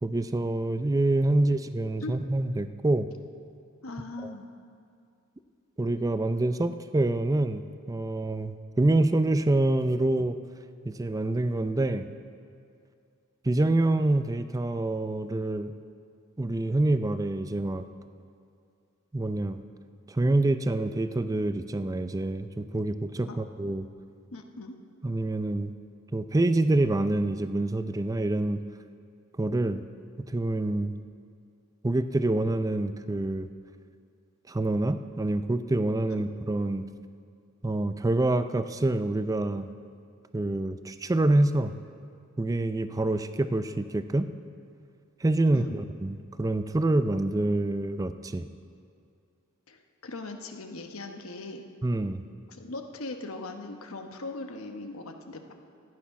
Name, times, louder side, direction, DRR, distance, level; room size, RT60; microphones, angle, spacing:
voice 1, 0.0-3.1 4.2-4.3 5.8-7.6 7.9-10.4 10.8-12.1 13.4-15.7 16.4-17.9 19.1-19.6 20.1-23.9 25.0-25.7 26.1-28.6 29.4-29.8 30.3-31.0 31.8-33.5 34.5-36.9 37.6-39.7 40.3-41.7 42.4-44.3 45.2-48.4 51.8-52.2, right 2 dB, 15° right, 11 dB, 0.4 m, -26 dB
voice 2, 3.8-4.5 23.3-23.4 24.3-24.8 36.1-36.2 45.5-45.8 49.7-51.6 52.5-55.5, left 2 dB, 85° left, 5 dB, 1.1 m, -39 dB
14.0 x 9.6 x 5.8 m, 2.4 s
head